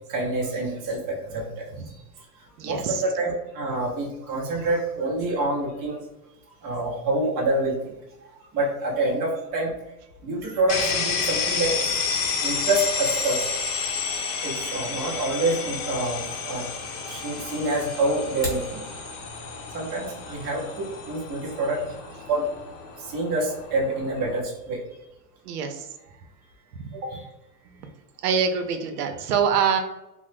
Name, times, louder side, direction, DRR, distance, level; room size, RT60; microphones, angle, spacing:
voice 1, 0.1-2.0 2.6-6.0 6.6-7.9 8.5-9.7 10.2-12.1 12.4-13.6 14.4-16.7 17.1-18.8 19.7-22.5 23.0-24.8 26.9-27.2, right 2 dB, 20° right, -3 dB, 0.5 m, -27 dB
voice 2, 2.6-3.0 25.4-26.2 26.7-26.8 27.6-27.9 28.2-29.8, right 6 dB, 80° right, 6 dB, 0.6 m, -25 dB
sound 1, 10.7-24.4, left 5 dB, 50° left, 0.7 m, -30 dB
sound 2, 18.2-18.7, left 1 dB, 20° left, 0.8 m, -33 dB
3.0 x 2.0 x 3.2 m, 0.93 s
supercardioid pair, 150°, 47 cm